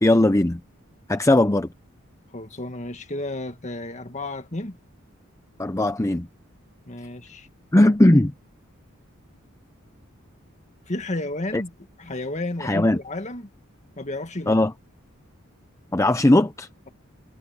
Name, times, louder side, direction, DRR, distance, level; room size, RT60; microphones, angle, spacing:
voice 1, 0.0-0.6 1.1-1.7 5.6-6.3 7.7-8.3 11.5-11.6 12.6-13.0 14.5-14.7 15.9-16.7, left 1 dB, 15° left, 0.6 m, -18 dB
voice 2, 2.3-4.8 6.9-7.5 10.9-11.7 12.0-13.5 14.0-14.6, left 2 dB, 35° left, 1.9 m, -32 dB
head